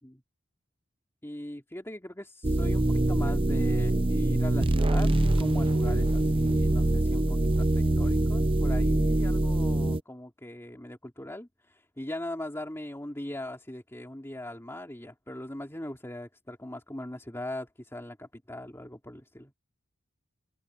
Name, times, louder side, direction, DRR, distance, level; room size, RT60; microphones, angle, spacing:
voice 1, 1.2-19.5, left 1 dB, 10° left, 2.7 m, -40 dB
sound 1, 2.4-10.0, right 1 dB, 25° right, 0.7 m, -24 dB
head